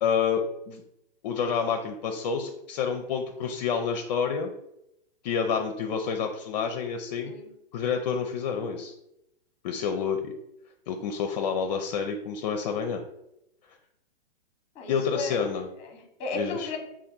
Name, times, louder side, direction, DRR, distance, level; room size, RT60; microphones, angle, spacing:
voice 1, 0.0-0.8 1.2-4.5 5.2-7.3 7.7-8.9 9.6-10.3 10.9-13.0 14.9-15.7 16.3-16.7, left 6 dB, 45° left, 4 dB, 0.5 m, -28 dB
voice 2, 14.7-15.4 15.8-16.8, left 3 dB, 20° left, 4 dB, 0.9 m, -34 dB
3.3 x 2.5 x 3.9 m, 0.82 s
hypercardioid pair, 125°, 29 cm